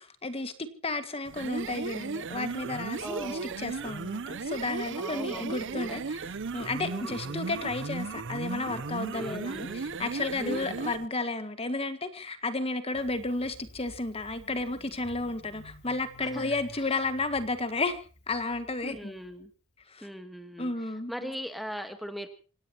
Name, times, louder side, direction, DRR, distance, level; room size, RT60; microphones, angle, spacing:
voice 1, 0.0-19.2 19.9-20.1 20.6-21.3, left 2 dB, 25° left, 1.8 m, -33 dB
sound 1, 1.3-11.1, right 4 dB, 55° right, 0.7 m, -36 dB
voice 2, 3.0-3.6 4.9-6.1 6.8-7.6 9.1-9.9 10.4-10.9 16.2-17.0 18.8-19.5 20.0-20.7 21.1-22.3, equal, ahead, 1.5 m, -40 dB
Engine starting, 12.9-19.4, equal, 50° left, 5.3 m, -52 dB
26.5 x 17.0 x 3.0 m
head